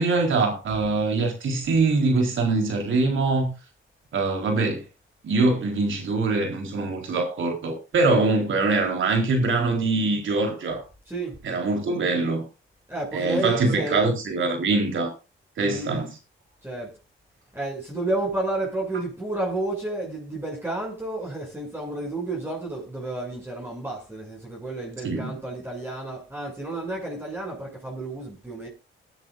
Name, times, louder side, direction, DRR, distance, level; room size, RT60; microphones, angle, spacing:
voice 1, 0.0-3.5 4.1-4.8 5.2-10.8 11.4-12.4 13.1-15.1 15.6-16.1 25.0-25.3, right 3 dB, 65° right, 4.0 m, -23 dB
voice 2, 11.1-11.4 12.9-14.1 15.6-16.0 16.6-16.9 17.5-28.7, right 2 dB, 10° right, 7.0 m, -31 dB
19.5 x 10.5 x 2.6 m
cardioid pair, 75°, 21 cm